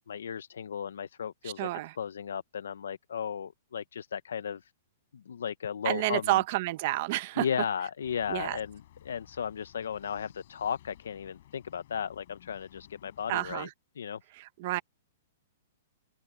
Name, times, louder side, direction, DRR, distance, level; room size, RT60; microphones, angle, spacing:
voice 1, 0.1-1.7 2.0-4.7 5.1-6.4 7.4-13.7 14.0-14.2, left 7 dB, 90° left, 0.6 m, -35 dB
voice 2, 1.6-1.9 5.8-7.4 8.3-8.6 13.3-13.7 14.4-14.8, right 18 dB, 45° right, 0.8 m, -29 dB
sound 1, 8.0-13.6, left 13 dB, 55° left, 7.1 m, -56 dB
open air
hypercardioid pair, 160°, 0 cm